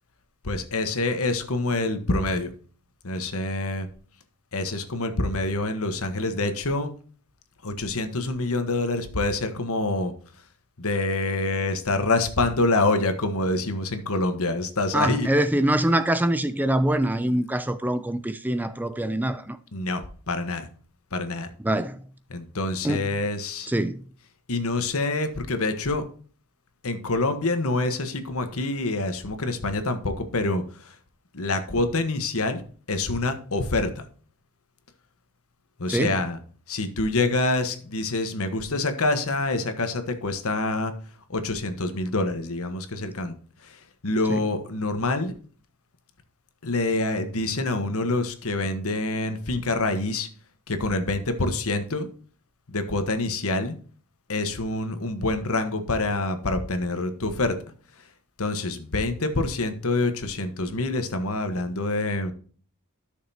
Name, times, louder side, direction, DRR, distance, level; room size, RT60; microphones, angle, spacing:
voice 1, 0.4-2.5 3.0-3.9 4.5-6.9 7.6-10.1 10.8-15.3 19.7-20.7 21.1-21.5 22.3-23.7 24.5-26.0 26.8-30.9 31.3-32.6 32.9-34.0 35.8-36.4 36.7-40.9 41.3-43.3 43.6-45.3 46.6-50.3 50.7-52.1 52.7-53.7 54.3-57.6 58.4-62.3, left 2 dB, 70° left, 1.3 m, -26 dB
voice 2, 14.9-19.6 21.6-22.0 22.8-23.1 23.7-24.0 35.9-36.2 44.3-44.4, right 1 dB, 10° right, 0.5 m, -24 dB
12.5 x 6.6 x 2.9 m
head